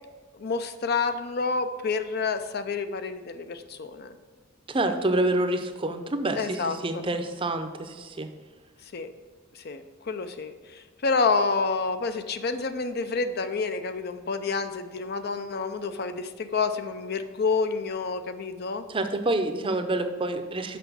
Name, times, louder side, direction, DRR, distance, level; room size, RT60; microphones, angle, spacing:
voice 1, 0.3-4.2 6.4-7.0 8.9-9.1 9.5-18.9, left 4 dB, 50° left, 9 dB, 0.5 m, -29 dB
voice 2, 4.7-8.3 18.9-20.8, right 2 dB, 25° right, 8 dB, 0.6 m, -27 dB
6.0 x 6.0 x 6.9 m, 1.4 s
head